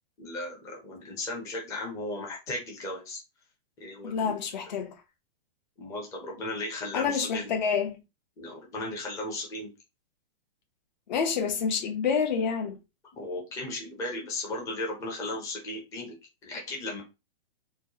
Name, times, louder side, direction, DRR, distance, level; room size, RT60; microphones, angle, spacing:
voice 1, 0.2-3.2 3.8-4.3 5.8-7.5 8.4-9.7 13.1-16.1 16.4-17.0, left 2 dB, 10° left, 0.6 m, -36 dB
voice 2, 4.0-4.9 6.9-8.0 11.1-12.8, left 6 dB, 45° left, 0.9 m, -28 dB
4.3 x 2.2 x 2.8 m
hypercardioid pair, 160°, 30 cm